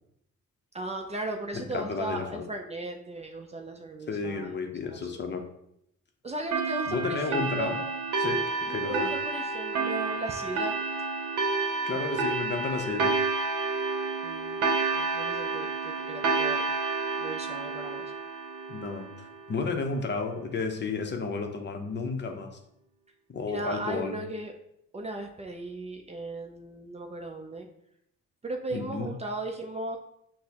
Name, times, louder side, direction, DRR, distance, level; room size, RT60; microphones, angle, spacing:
voice 1, 0.7-4.6 4.9-5.1 6.2-7.9 8.9-10.7 14.2-14.6 14.9-16.6 17.2-18.0 23.5-24.5 24.9-27.7 28.4-30.0, right 2 dB, 20° right, 3 dB, 0.4 m, -37 dB
voice 2, 1.5-2.4 4.1-5.4 6.9-7.8 8.2-9.1 11.8-13.1 18.7-22.5 23.3-24.2 28.7-29.1, left 4 dB, 35° left, 4 dB, 0.6 m, -32 dB
sound 1, 6.5-19.6, right 3 dB, 80° right, 0.7 m, -30 dB
6.0 x 2.0 x 2.8 m, 0.76 s
cardioid pair, 90°, 30 cm